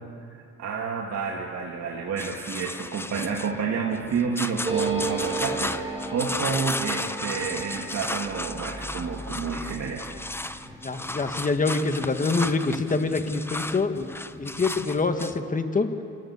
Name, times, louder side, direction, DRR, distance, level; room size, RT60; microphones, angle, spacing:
voice 1, 0.6-10.1 10.4-10.6, right 5 dB, 60° right, -2 dB, 2.4 m, -30 dB
sound 1, 2.2-15.4, left 2 dB, 10° left, 0.7 m, -34 dB
sound 2, 4.6-13.8 14.1-14.2 14.4-15.0, right 3 dB, 15° right, 4.0 m, -35 dB
voice 2, 10.8-14.1 14.4-15.9, left 3 dB, 25° left, 7 dB, 1.6 m, -25 dB
27.5 x 14.0 x 8.1 m, 2.5 s
cardioid pair, 90°, 30 cm